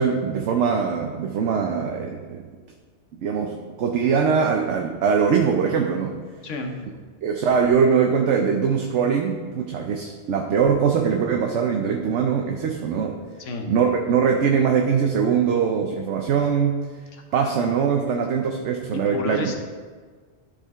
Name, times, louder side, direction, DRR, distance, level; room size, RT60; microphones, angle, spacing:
voice 1, 0.0-2.4 3.1-6.2 7.2-13.1 13.7-16.8 17.3-19.5, right 6 dB, 70° right, 2 dB, 1.0 m, -22 dB
voice 2, 6.4-6.8 13.4-13.7 17.1-17.6 18.9-19.6, left 3 dB, 80° left, 4 dB, 1.3 m, -32 dB
12.0 x 5.1 x 3.6 m, 1.5 s
omnidirectional pair, 1.3 m